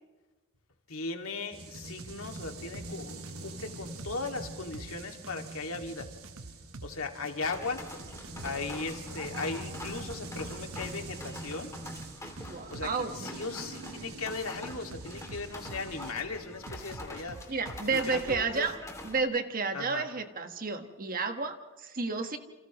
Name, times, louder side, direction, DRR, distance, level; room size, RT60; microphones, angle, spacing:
voice 1, 0.9-6.1 6.8-7.8 8.4-11.7 12.7-12.9 13.1-17.5 17.9-18.7 19.7-20.1, left 3 dB, 70° left, 4 dB, 2.3 m, -37 dB
sound 1, 1.5-16.1, right 2 dB, 85° right, 2.5 m, -44 dB
sound 2, 1.7-2.9 3.2-6.9 7.2-10.9 11.2-13.0 14.7-16.2 16.7-18.6, right 2 dB, 70° right, 1.0 m, -47 dB
sound 3, 7.4-19.2, left 2 dB, 15° left, 2.6 m, -46 dB
voice 2, 12.4-13.3 17.5-18.8 19.0-22.4, right 4 dB, 40° right, 7 dB, 1.5 m, -31 dB
29.5 x 28.0 x 3.1 m, 1.2 s
head